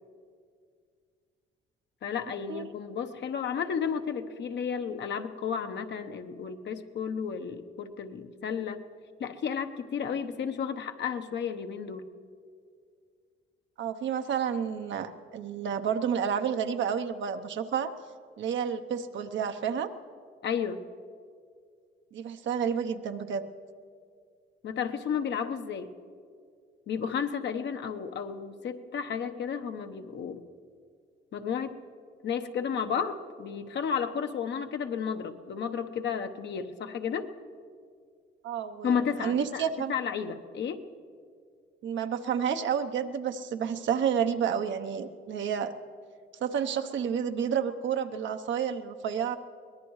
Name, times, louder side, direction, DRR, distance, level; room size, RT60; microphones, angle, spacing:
voice 1, 2.0-8.8 9.2-12.1 20.4-20.8 24.6-25.9 26.9-30.4 31.3-31.8 32.2-37.3 38.8-39.6 39.9-40.8, left 7 dB, 65° left, 7 dB, 1.0 m, -32 dB
voice 2, 13.8-17.9 18.4-19.9 22.1-23.4 38.4-39.9 41.8-45.7 46.4-49.4, right 7 dB, 70° right, 8 dB, 0.9 m, -30 dB
23.5 x 18.5 x 3.2 m, 2.2 s
cardioid pair, 90°, 20 cm